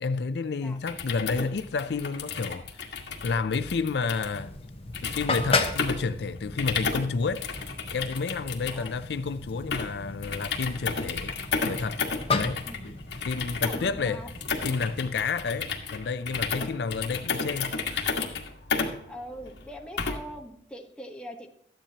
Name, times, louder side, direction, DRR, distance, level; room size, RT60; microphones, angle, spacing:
voice 1, 0.0-2.8 3.2-4.5 5.0-7.5 7.9-11.3 11.6-12.1 12.3-12.6 13.3-14.2 14.6-18.2, left 4 dB, 65° left, 0.4 m, -30 dB
sound 1, 0.8-20.4, left 5 dB, 80° left, 1.7 m, -33 dB
sound 2, 4.3-15.1, left 3 dB, 35° left, 1.0 m, -34 dB
voice 2, 13.6-14.3 19.1-21.5, equal, 5° left, 1.1 m, -42 dB
13.0 x 10.5 x 2.8 m
head